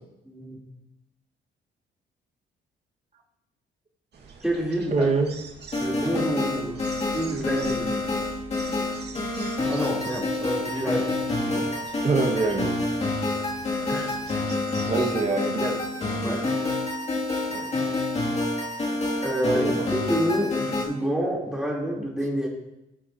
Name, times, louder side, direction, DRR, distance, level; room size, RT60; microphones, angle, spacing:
voice 1, 0.3-0.6 4.4-5.1 5.8-6.9 7.1-8.0 9.7-11.7 13.9-14.1 16.2-16.4 19.2-19.7 20.1-22.5, equal, 5° right, -4 dB, 3.6 m, -28 dB
sound 1, 4.1-15.2, right 5 dB, 55° right, 2.1 m, -45 dB
voice 2, 4.9-5.4 12.0-12.8 14.9-15.8 17.5-17.7 19.5-19.9, right 3 dB, 35° right, 1 dB, 1.9 m, -25 dB
sound 2, 5.7-20.8, left 2 dB, 35° left, 2.9 m, -28 dB
19.0 x 6.4 x 3.0 m, 0.90 s
cardioid pair, 90°, 20 cm